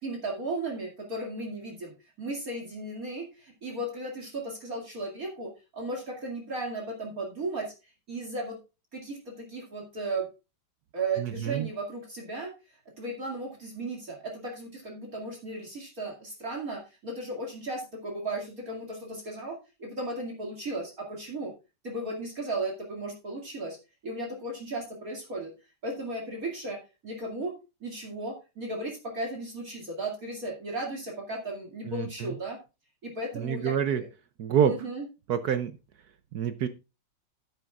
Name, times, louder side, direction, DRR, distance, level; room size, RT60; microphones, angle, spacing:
voice 1, 0.0-7.7 8.1-8.6 8.9-10.3 10.9-12.5 13.0-21.5 21.8-23.8 24.0-25.5 25.8-27.5 27.8-32.6 33.0-34.1 34.6-35.0, right 2 dB, 40° right, 0 dB, 2.7 m, -35 dB
voice 2, 11.2-11.7 31.9-32.3 33.3-34.0 34.4-34.7 35.3-35.7 36.3-36.7, right 8 dB, 65° right, 11 dB, 1.0 m, -27 dB
12.0 x 9.3 x 2.4 m, 0.28 s
omnidirectional pair, 2.3 m